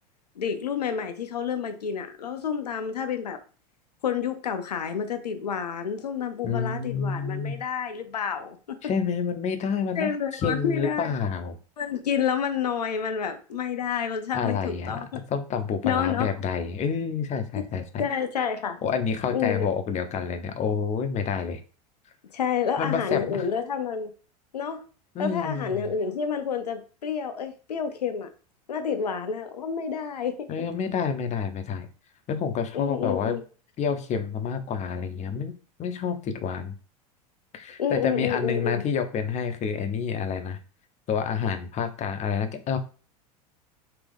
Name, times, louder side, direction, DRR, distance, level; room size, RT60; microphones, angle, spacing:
voice 1, 0.4-3.4 4.0-8.6 9.9-11.1 11.8-15.2 15.8-16.3 17.6-17.7 18.0-18.8 19.3-19.7 22.3-24.1 24.5-24.8 25.2-28.3 28.7-30.5 32.7-33.4 37.8-38.8, left 7 dB, 85° left, 0.7 m, -29 dB
voice 2, 6.4-7.6 8.8-11.6 14.3-18.0 18.8-21.6 22.8-23.5 25.1-25.8 30.5-31.9 32.3-33.4 33.8-35.5 35.8-36.7 37.5-40.6 41.1-42.8, left 6 dB, 35° left, 0.8 m, -28 dB
3.5 x 2.9 x 3.6 m
hypercardioid pair, 90°, 20 cm